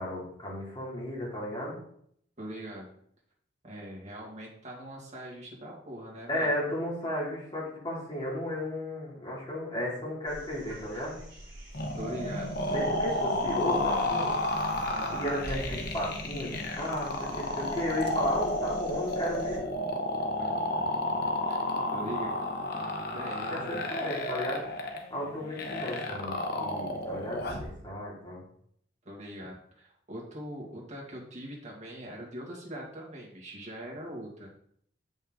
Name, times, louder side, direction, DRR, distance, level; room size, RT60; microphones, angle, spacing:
voice 1, 0.0-1.8 6.3-11.2 12.7-14.4 15.1-19.7 23.5-24.6 25.1-28.4, equal, 25° left, -5 dB, 2.7 m, -34 dB
voice 2, 2.4-2.9 3.6-6.5 12.0-12.8 14.9-15.3 20.4-20.9 21.5-22.3 22.7-23.9 25.2-25.6 29.0-34.5, right 1 dB, 40° right, -3 dB, 2.1 m, -42 dB
sound 1, 10.3-19.6 21.7-21.8, right 1 dB, 20° right, 2.8 m, -46 dB
sound 2, 11.7-27.7, left 2 dB, 55° left, 1.0 m, -32 dB
7.2 x 5.4 x 3.8 m, 0.67 s
head